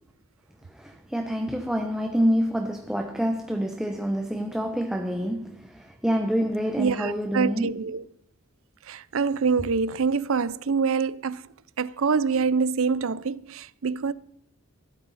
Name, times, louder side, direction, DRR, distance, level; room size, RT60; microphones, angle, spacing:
voice 1, 0.7-7.8, equal, 5° right, 0.8 m, -27 dB
voice 2, 6.8-8.0 8.9-11.4 11.8-14.1, right 5 dB, 65° right, 0.5 m, -25 dB
15.5 x 12.5 x 4.1 m
head